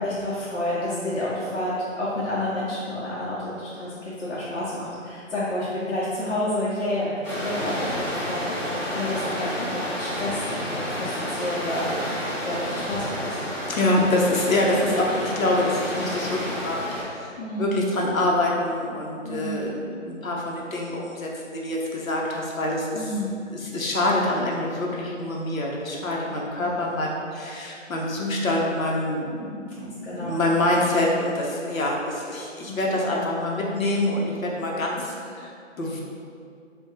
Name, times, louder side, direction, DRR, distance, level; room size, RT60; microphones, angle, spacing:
voice 1, 0.0-7.1 7.4-13.4 17.4-17.7 19.2-19.6 22.9-23.4 26.6-27.0 29.8-30.4 32.7-33.2, left 1 dB, 55° left, -9 dB, 0.6 m, -30 dB
sound 1, 7.2-17.0, equal, 20° left, 1.0 m, -30 dB
voice 2, 13.7-17.3 17.6-23.1 23.5-36.0, left 1 dB, 90° left, -2 dB, 0.8 m, -26 dB
3.6 x 2.2 x 2.8 m, 2.4 s
figure-of-eight pair, 160°, 40 cm